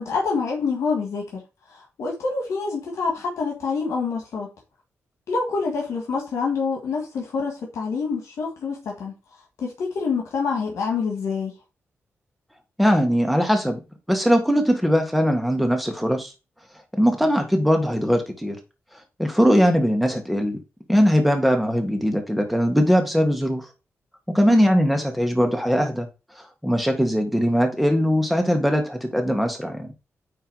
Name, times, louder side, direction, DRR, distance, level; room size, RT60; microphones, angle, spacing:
voice 1, 0.0-1.4 1.7-4.5 5.3-9.1 9.6-11.5 24.5-24.7, left 4 dB, 85° left, 1.8 m, -26 dB
voice 2, 12.8-13.8 14.1-16.3 16.9-18.6 19.2-20.6 20.9-23.7 24.3-26.1 26.6-29.9, equal, ahead, 1.7 m, -20 dB
9.3 x 3.4 x 4.7 m
wide cardioid pair, 110°, 5 cm